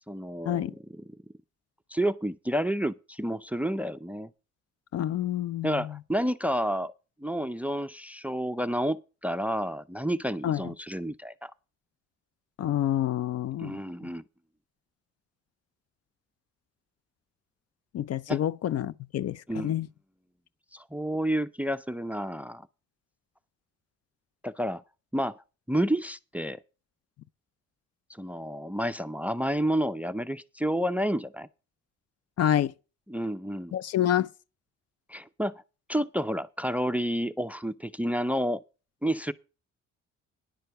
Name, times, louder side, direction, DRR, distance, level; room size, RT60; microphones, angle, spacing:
voice 1, 0.1-0.6 0.9-1.0 1.9-4.3 5.6-6.9 7.2-11.5 13.6-14.2 18.3-18.4 19.5-19.7 20.7-22.7 24.4-24.8 25.1-25.4 25.7-26.6 28.2-31.5 33.1-33.8 35.1-35.5 35.9-38.6 39.0-39.3, equal, 5° right, 0.4 m, -30 dB
voice 2, 4.9-5.9 10.4-10.6 12.6-13.8 17.9-19.9 32.4-32.7 33.7-34.3, left 11 dB, 55° left, 0.5 m, -28 dB
10.5 x 6.5 x 6.7 m
cardioid pair, 90°, 30 cm